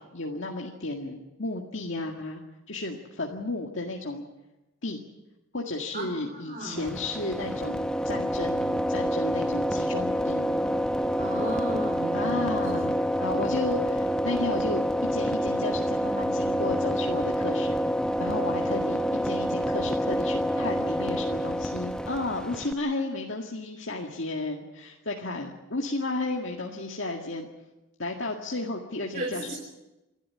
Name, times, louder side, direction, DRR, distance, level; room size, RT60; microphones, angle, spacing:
voice 1, 0.0-2.4 2.7-4.3 4.8-5.0 5.5-10.6 12.1-14.8 15.1-17.8 18.2-27.5 28.0-29.5, left 2 dB, 65° left, 0 dB, 2.0 m, -33 dB
voice 2, 5.9-7.0 11.2-12.5 29.1-29.5, right 1 dB, 40° right, 1 dB, 3.9 m, -35 dB
sound 1, 6.8-22.7, equal, 5° left, 0.7 m, -27 dB
28.5 x 12.5 x 9.7 m, 1.0 s
head